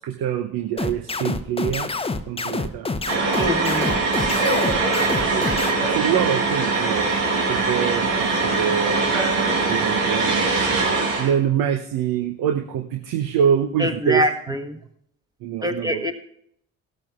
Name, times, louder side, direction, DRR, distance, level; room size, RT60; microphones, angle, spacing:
voice 1, 0.0-1.9 2.3-3.0 4.6-4.8 5.3-7.2 7.5-9.0 9.7-14.5 15.4-16.0, right 9 dB, 55° right, 7 dB, 0.8 m, -25 dB
sound 1, 0.8-5.7, left 3 dB, 15° left, 0.8 m, -27 dB
sound 2, 3.1-11.3, right 3 dB, 80° right, 1.7 m, -22 dB
voice 2, 3.4-3.9 13.8-14.6 15.6-16.1, equal, 10° right, 6 dB, 1.4 m, -24 dB
17.0 x 13.0 x 2.4 m, 0.72 s
figure-of-eight pair, 45°, 39 cm